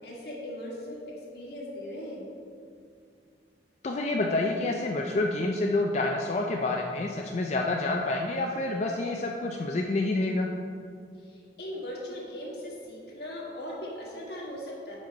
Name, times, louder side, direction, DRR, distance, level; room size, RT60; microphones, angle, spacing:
voice 1, 0.0-2.2 11.2-15.0, left 1 dB, 60° left, -4 dB, 1.6 m, -39 dB
voice 2, 3.8-10.5, left 2 dB, 40° left, 1 dB, 0.4 m, -28 dB
5.5 x 5.1 x 5.2 m, 2.3 s
head